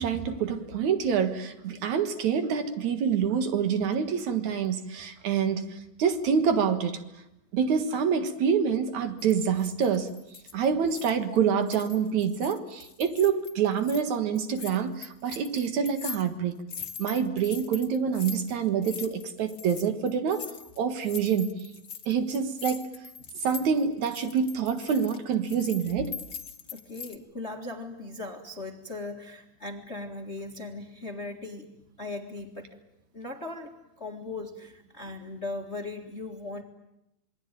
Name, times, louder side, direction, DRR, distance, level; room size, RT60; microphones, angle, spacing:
voice 1, 0.0-7.0 7.5-10.1 10.5-16.5 17.0-20.5 20.8-21.6 22.1-22.9 23.4-26.1, right 7 dB, 60° right, 2.7 m, -26 dB
sound 1, 9.2-11.4 11.6-14.0 14.3-27.2, left 7 dB, 65° left, 0.9 m, -42 dB
voice 2, 26.7-31.7 32.0-32.8 33.1-36.6, left 2 dB, 30° left, 1.2 m, -38 dB
27.0 x 22.0 x 9.1 m
omnidirectional pair, 4.1 m